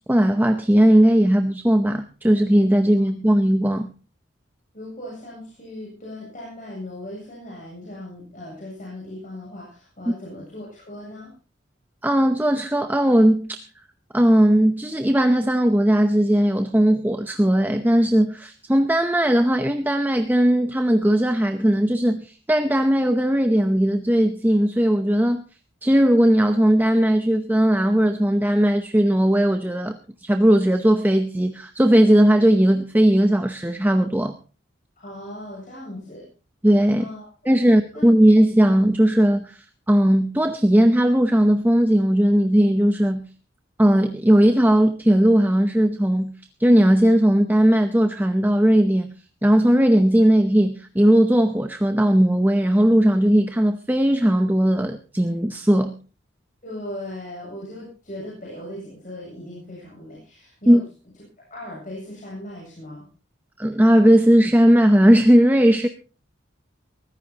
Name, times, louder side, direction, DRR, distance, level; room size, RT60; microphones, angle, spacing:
voice 1, 0.1-3.9 10.1-10.2 12.0-13.6 14.1-25.4 25.8-34.3 36.6-37.0 37.5-43.3 43.8-46.3 46.6-49.1 49.4-55.9 60.7-60.8 63.6-65.9, equal, 10° right, 7 dB, 0.7 m, -18 dB
voice 2, 4.7-11.3 35.0-36.3 37.0-37.5 37.9-38.0 56.6-60.8 61.4-63.1, left 1 dB, 45° left, -3 dB, 7.6 m, -38 dB
22.5 x 15.0 x 2.9 m, 0.35 s
head